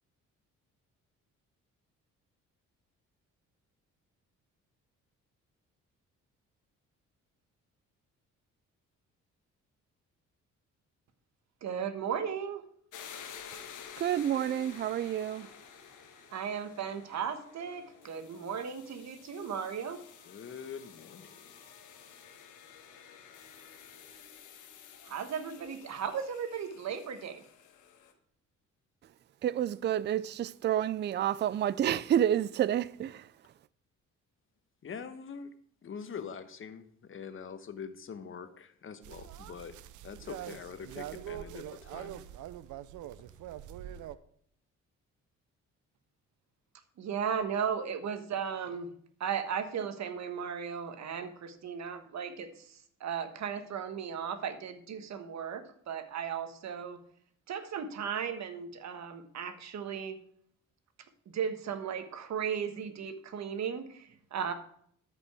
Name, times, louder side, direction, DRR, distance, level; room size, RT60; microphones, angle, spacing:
voice 1, 11.6-12.6 16.3-20.0 25.0-27.4 47.0-48.9 49.2-57.0 57.5-60.2 61.3-64.5, right 7 dB, 65° right, 1.3 m, -36 dB
sound 1, 12.9-28.1, left 8 dB, 85° left, 1.4 m, -51 dB
voice 2, 14.0-15.5 29.4-33.3, right 10 dB, 35° right, 0.4 m, -29 dB
voice 3, 20.2-21.5 34.8-35.5 35.8-39.8 40.0-42.2, left 6 dB, 45° left, 1.1 m, -44 dB
sound 2, 39.0-44.2, right 12 dB, 80° right, 0.6 m, -44 dB
13.0 x 5.3 x 4.8 m
cardioid pair, 90°, 30 cm